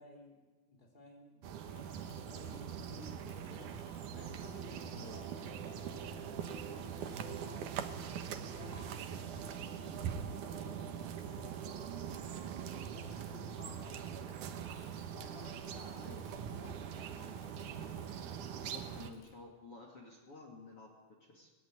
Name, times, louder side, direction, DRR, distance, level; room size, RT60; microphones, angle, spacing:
voice 1, 0.0-3.7 4.1-8.1 8.4-10.8 11.2-11.8 12.4-14.4 15.1-17.3 18.2-18.8, left 1 dB, 10° left, 0 dB, 3.0 m, -56 dB
sound 1, 1.4-19.1, right 8 dB, 85° right, 1.7 m, -43 dB
Bicycle / Mechanisms, 1.6-19.3, left 3 dB, 65° left, 7.1 m, -66 dB
sound 2, 4.1-13.7, right 5 dB, 70° right, 1.3 m, -52 dB
voice 2, 4.9-5.3 16.0-16.4 18.6-21.5, left 2 dB, 40° left, 1 dB, 2.5 m, -53 dB
20.0 x 17.0 x 9.7 m, 1.3 s
omnidirectional pair, 5.6 m